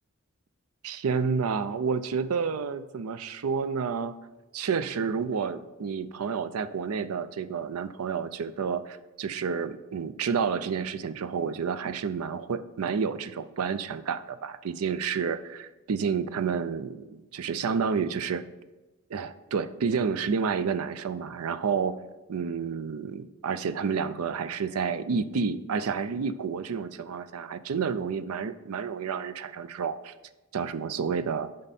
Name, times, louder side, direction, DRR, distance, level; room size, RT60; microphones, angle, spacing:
voice 1, 0.8-4.1 4.5-18.4 19.1-22.0 22.3-30.1 30.5-31.5, right 6 dB, 85° right, 13 dB, 0.4 m, -30 dB
8.9 x 5.3 x 4.2 m, 1.1 s
head